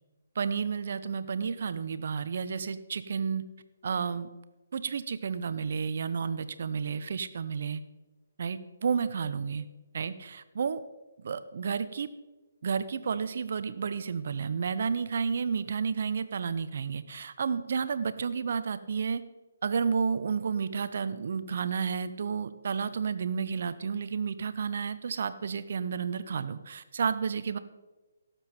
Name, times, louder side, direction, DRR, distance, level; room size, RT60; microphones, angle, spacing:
voice 1, 0.4-3.4 3.8-4.3 4.7-7.8 8.4-9.7 9.9-10.8 11.2-12.1 12.6-19.2 19.6-27.6, right 6 dB, 55° right, 13 dB, 0.8 m, -31 dB
17.5 x 7.3 x 4.3 m, 1.1 s
figure-of-eight pair, 140°, 0 cm